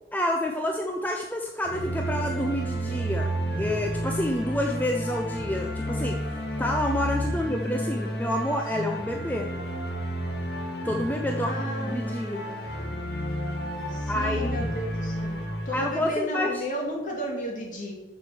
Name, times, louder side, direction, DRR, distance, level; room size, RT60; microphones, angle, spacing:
voice 1, 0.1-9.5 10.8-11.5 11.8-12.4 14.1-14.7 15.7-16.6, left 1 dB, 10° left, 1 dB, 0.6 m, -29 dB
sound 1, 1.6-16.2, equal, 80° left, 1.6 m, -31 dB
voice 2, 7.3-8.2 11.3-12.2 13.9-17.9, equal, 45° left, -1 dB, 2.3 m, -34 dB
7.2 x 6.3 x 7.2 m, 1.1 s
head